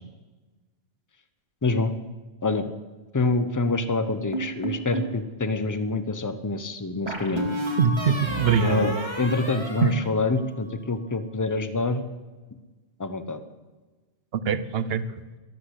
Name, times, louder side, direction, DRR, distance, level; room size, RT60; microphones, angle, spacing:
voice 1, 1.6-1.9 2.4-2.7 3.1-7.5 8.6-12.0 13.0-13.4, left 3 dB, 20° left, 11 dB, 0.7 m, -26 dB
sound 1, 4.3-5.2 7.1-10.7, right 1 dB, 25° right, 1.9 m, -32 dB
voice 2, 7.8-9.0 9.8-9.9 14.3-15.1, right 6 dB, 60° right, 15 dB, 0.9 m, -23 dB
12.5 x 12.0 x 8.1 m, 1.3 s
omnidirectional pair, 1.2 m